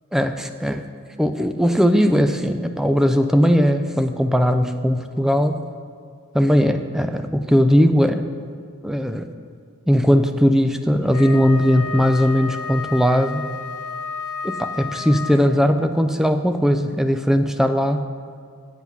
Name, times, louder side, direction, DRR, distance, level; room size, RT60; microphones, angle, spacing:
voice 1, 0.1-0.9 1.2-5.5 6.3-8.2 8.8-9.3 9.9-13.5 14.4-18.0, equal, ahead, 7 dB, 0.4 m, -18 dB
Wind instrument woodwind instrument, 11.0-15.7, left 4 dB, 80° left, 0.7 m, -31 dB
8.1 x 8.1 x 5.9 m, 2.2 s
head